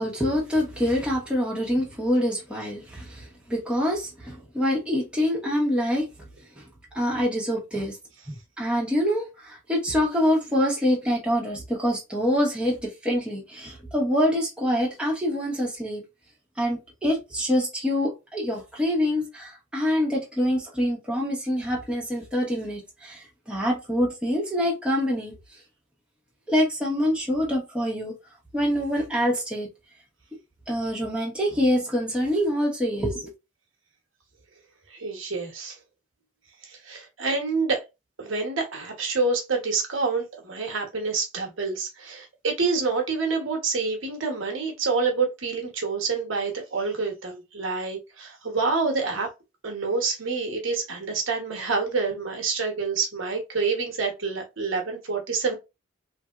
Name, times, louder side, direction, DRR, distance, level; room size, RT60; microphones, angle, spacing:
voice 1, 0.0-6.1 6.6-6.7 6.9-8.0 8.3-16.0 16.6-25.3 26.5-28.1 28.5-29.7 30.7-33.3, equal, 5° right, 1.1 m, -25 dB
voice 2, 34.9-35.8 36.6-37.8 38.2-49.3 49.6-55.5, right 4 dB, 75° right, 1.1 m, -27 dB
3.4 x 2.7 x 2.4 m
head